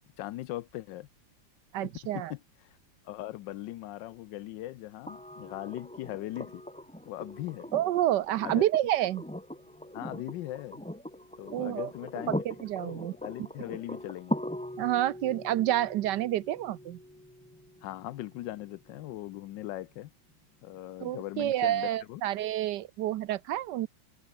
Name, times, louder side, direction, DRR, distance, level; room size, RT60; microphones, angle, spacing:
voice 1, 0.2-1.1 1.8-2.8 3.0-6.6 7.1-7.7 8.4-8.6 9.9-10.8 11.4-12.4 12.8-14.4 17.8-20.1 20.6-22.2, left 15 dB, 75° left, 1.2 m, -39 dB
voice 2, 1.7-2.3 7.7-9.2 11.5-11.9 12.3-13.1 14.8-17.0 21.0-23.9, right 13 dB, 70° right, 1.2 m, -29 dB
sound 1, 5.1-19.0 20.7-20.8, left 1 dB, 5° left, 1.3 m, -41 dB
omnidirectional pair, 2.1 m